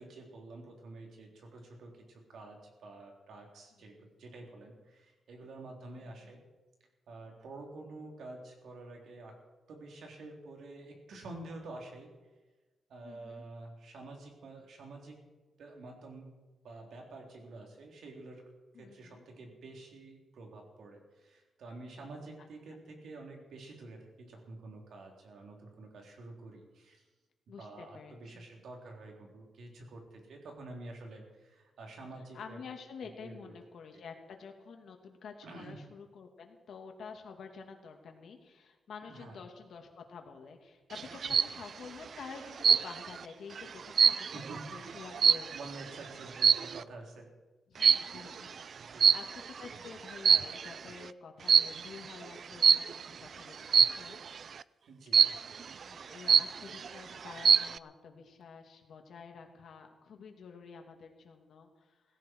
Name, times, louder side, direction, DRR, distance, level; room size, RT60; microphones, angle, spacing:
voice 1, 0.0-6.4 7.1-9.4 9.7-12.1 12.9-15.2 15.6-16.3 16.6-18.4 18.8-27.0 27.6-32.6 33.2-33.5 33.9-34.0 35.4-35.8 39.1-39.4 44.2-45.0 45.5-47.3 48.3-48.5 48.8-49.1 54.9-55.3 56.2-56.4, right 2 dB, 80° right, 1 dB, 3.7 m, -48 dB
voice 2, 3.8-4.1 6.0-6.4 13.0-13.4 18.7-19.2 22.4-22.5 27.5-28.4 32.3-45.5 45.8-46.0 47.7-54.2 55.8-62.0, left 5 dB, 70° left, 4 dB, 2.4 m, -49 dB
sound 1, 41.0-41.6 42.6-43.2 43.6-45.8 46.4-46.8 47.8-48.2 49.0-49.6 50.1-50.8 51.5-51.8 52.6-53.0 53.7-54.1 55.1-55.6 56.0-56.1 56.3-56.9 57.3-57.8, right 7 dB, 55° right, 0.4 m, -24 dB
17.5 x 16.0 x 4.7 m, 1.2 s
wide cardioid pair, 120°, 0 cm